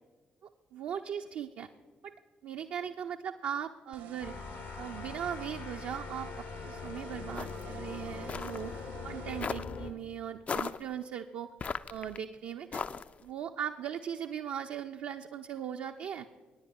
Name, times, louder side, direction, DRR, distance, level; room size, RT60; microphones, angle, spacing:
voice 1, 0.4-1.7 2.0-2.1 2.4-4.4 4.8-8.8 9.0-11.5 11.9-12.8 13.2-16.3, right 9 dB, 60° right, 4 dB, 0.4 m, -39 dB
sound 1, 3.9-9.5, right 8 dB, 75° right, 0.9 m, -50 dB
sound 2, 4.2-9.9, left 5 dB, 55° left, 0.7 m, -42 dB
sound 3, 7.4-7.7 8.3-8.6 9.4-9.8 10.5-10.8 11.6-12.2 12.7-13.2, left 5 dB, 35° left, 0.3 m, -36 dB
25.0 x 10.0 x 2.2 m, 1.4 s
figure-of-eight pair, 40°, 4 cm